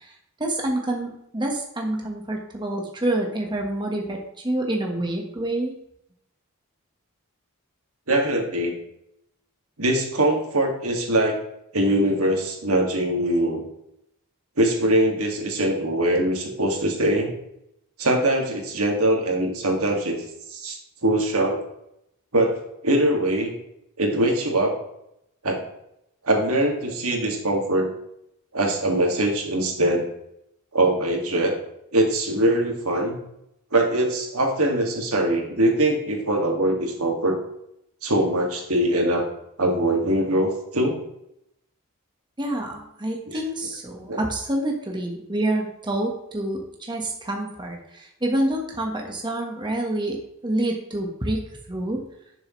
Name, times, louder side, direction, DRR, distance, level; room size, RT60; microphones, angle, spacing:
voice 1, 0.0-5.7 42.4-50.2 50.4-52.0, right 1 dB, 20° right, 1 dB, 1.4 m, -27 dB
voice 2, 8.1-8.7 9.8-11.4 11.7-13.6 14.6-17.3 18.0-20.2 20.5-20.8 21.0-21.6 22.3-22.6 22.8-23.5 24.0-24.8 25.4-25.6 26.2-27.9 28.5-30.1 30.7-31.5 31.9-33.2 33.7-37.4 38.0-39.2 39.6-41.0 43.3-43.4 44.1-44.2, right 1 dB, 75° right, 1 dB, 2.1 m, -22 dB
11.0 x 6.8 x 3.2 m, 0.79 s
head